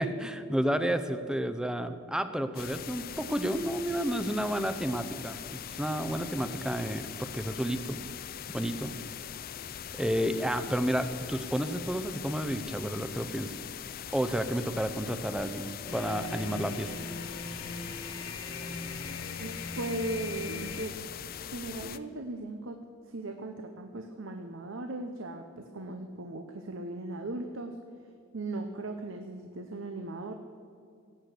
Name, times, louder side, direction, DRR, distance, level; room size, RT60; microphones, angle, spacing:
voice 1, 0.0-8.0 8.5-8.9 9.9-13.5 14.1-16.9, equal, 5° right, 10 dB, 0.6 m, -31 dB
sound 1, 2.5-22.0, left 9 dB, 45° left, 0.5 m, -42 dB
sound 2, 15.9-20.9, left 3 dB, 75° left, 1.7 m, -40 dB
voice 2, 19.4-20.9 21.3-22.8 23.1-27.8 28.3-30.3, right 2 dB, 75° right, 6 dB, 0.9 m, -38 dB
17.5 x 8.4 x 6.7 m, 2.3 s
head